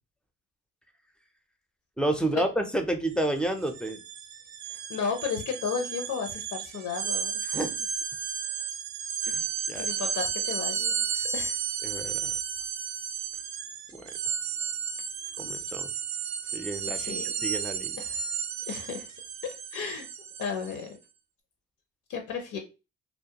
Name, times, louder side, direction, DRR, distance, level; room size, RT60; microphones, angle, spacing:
voice 1, 2.0-4.0 7.5-7.8 9.3-9.9 11.8-12.3 13.9-14.1 15.4-15.9 16.5-18.0, right 1 dB, 5° left, 6 dB, 0.4 m, -30 dB
sound 1, 3.1-3.3 3.6-20.8, right 7 dB, 65° right, 0.5 m, -33 dB
voice 2, 4.7-7.4 9.7-11.5 16.8-17.5 18.0-18.2 18.7-19.1 19.4-20.1 20.4-21.0 22.1-22.6, left 6 dB, 75° left, 4 dB, 0.6 m, -34 dB
2.3 x 2.1 x 2.8 m, 0.30 s
cardioid pair, 90°, 30 cm